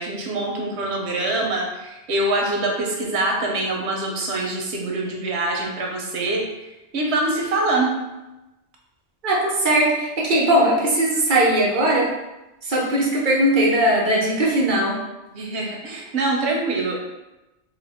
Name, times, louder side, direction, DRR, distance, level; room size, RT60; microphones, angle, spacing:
voice 1, 0.0-6.4 6.9-7.9 15.3-17.0, right 2 dB, 85° right, 0 dB, 1.0 m, -24 dB
voice 2, 9.2-12.1 12.6-15.0, right 1 dB, 50° right, -3 dB, 0.9 m, -19 dB
3.6 x 2.1 x 3.5 m, 1.0 s
omnidirectional pair, 1.1 m